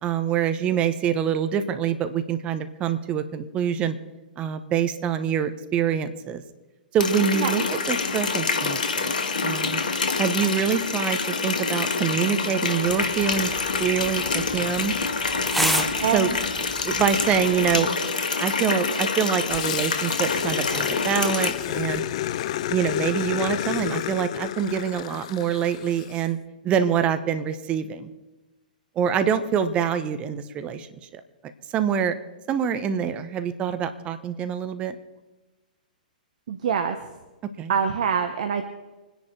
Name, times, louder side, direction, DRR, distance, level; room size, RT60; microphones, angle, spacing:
voice 1, 0.0-3.9 4.4-6.4 6.9-9.1 9.4-9.8 10.2-13.5 13.8-14.9 15.6-16.3 16.8-17.9 18.4-22.0 22.7-26.4 26.6-28.1 29.0-30.9 31.1-31.2 31.7-32.1 32.5-34.9 37.6-37.7, right 8 dB, 25° right, 10 dB, 1.2 m, -25 dB
Water tap faucet, 7.0-21.5, left 4 dB, 65° left, 1.7 m, -26 dB
sound 1, 12.9-17.9, equal, ahead, 1.4 m, -32 dB
voice 2, 16.0-16.4 36.5-37.0 37.7-38.6, right 7 dB, 50° right, 7 dB, 1.3 m, -24 dB
Growling, 19.5-26.2, left 12 dB, 45° left, 0.6 m, -30 dB
25.5 x 10.5 x 4.5 m, 1.1 s
figure-of-eight pair, 110°, 5 cm